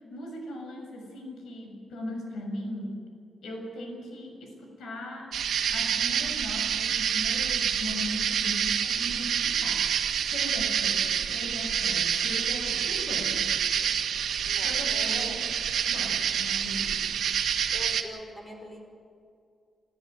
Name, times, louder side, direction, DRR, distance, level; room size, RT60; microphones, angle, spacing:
voice 1, 0.1-3.0 3.4-5.3 5.7-13.5 14.6-15.4 15.9-17.2, left 1 dB, 90° left, 2 dB, 7.0 m, -39 dB
sound 1, 5.3-18.0, right 8 dB, 85° right, 1.8 m, -27 dB
voice 2, 14.4-15.5 17.7-18.8, equal, 15° left, 2 dB, 5.3 m, -43 dB
28.5 x 14.0 x 9.5 m, 2.4 s
wide cardioid pair, 150°, 0 cm